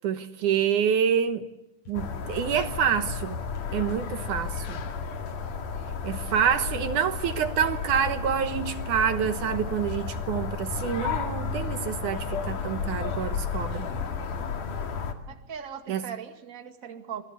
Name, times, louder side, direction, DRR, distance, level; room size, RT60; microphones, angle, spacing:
voice 1, 0.0-1.5 1.9-3.4 3.7-4.8 6.0-13.9 15.9-16.0, right 8 dB, 75° right, 2.6 m, -27 dB
sound 1, 1.9-15.1, left 5 dB, 75° left, 3.8 m, -32 dB
sound 2, 1.9-2.0 2.5-2.7 3.6-4.0 4.6-4.7 5.3-5.4 5.9-6.0 6.3-6.7 7.1-7.2, left 1 dB, 50° left, 5.7 m, -50 dB
voice 2, 15.3-17.2, right 8 dB, 30° right, 2.2 m, -39 dB
27.0 x 21.5 x 8.2 m
omnidirectional pair, 3.7 m